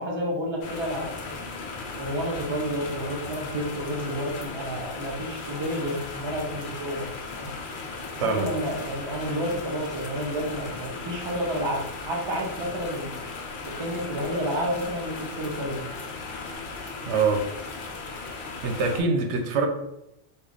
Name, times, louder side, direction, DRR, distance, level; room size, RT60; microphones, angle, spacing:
voice 1, 0.0-1.4 1.9-7.1 7.3-7.5 8.2-13.1 13.8-15.8, equal, 30° right, -2 dB, 0.7 m, -30 dB
sound 1, 0.6-19.0, left 3 dB, 55° left, 0.7 m, -37 dB
voice 2, 17.1-17.4 18.6-19.7, right 4 dB, 90° right, 4 dB, 0.9 m, -24 dB
3.2 x 2.4 x 3.8 m, 0.87 s
omnidirectional pair, 1.1 m